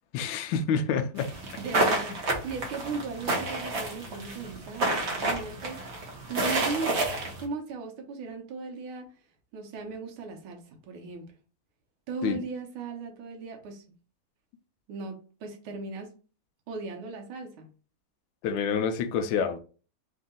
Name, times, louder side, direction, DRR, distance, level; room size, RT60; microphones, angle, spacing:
voice 1, 0.1-1.3 12.2-12.4 18.4-19.6, left 6 dB, 75° left, 1.3 m, -27 dB
sound 1, 1.2-7.4, right 2 dB, 45° right, 0.9 m, -30 dB
voice 2, 1.6-5.9 6.3-9.1 9.5-11.3 12.1-13.8 14.9-16.1 16.7-17.7, right 4 dB, 80° right, 1.7 m, -37 dB
4.0 x 2.7 x 3.7 m
omnidirectional pair, 2.3 m